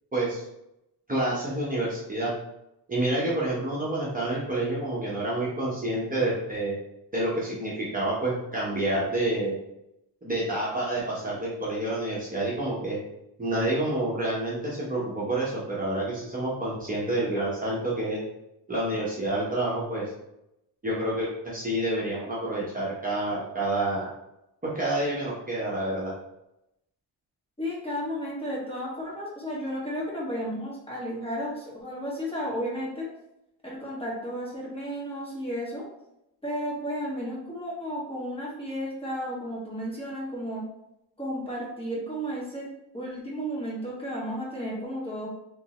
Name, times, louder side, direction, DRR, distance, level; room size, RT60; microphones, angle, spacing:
voice 1, 0.1-0.4 1.1-2.3 2.9-6.8 7.1-9.5 10.2-13.0 13.4-18.2 18.7-20.1 20.8-24.1 24.6-26.1, right 1 dB, 20° right, -7 dB, 0.9 m, -28 dB
voice 2, 27.6-33.1 33.6-35.8 36.4-40.6 41.2-42.7 42.9-45.3, equal, 15° left, -6 dB, 1.3 m, -33 dB
3.4 x 3.0 x 2.9 m, 0.85 s
cardioid pair, 110°, 41 cm